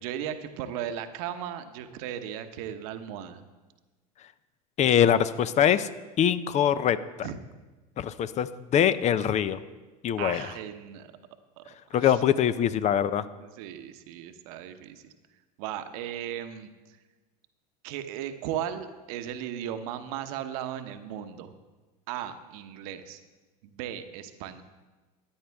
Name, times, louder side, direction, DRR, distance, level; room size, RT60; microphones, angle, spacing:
voice 1, 0.0-3.4 7.2-7.4 10.2-11.1 11.6-11.7 11.9-12.2 13.4-15.0 15.6-16.7 17.8-21.5 22.1-23.2 23.6-24.6, right 10 dB, 65° right, 9 dB, 1.0 m, -36 dB
voice 2, 4.8-5.9 6.2-7.3 8.0-9.6 10.0-10.5 11.9-13.3, left 9 dB, 35° left, 14 dB, 0.6 m, -23 dB
14.0 x 9.9 x 3.5 m, 1.2 s
hypercardioid pair, 90°, 20 cm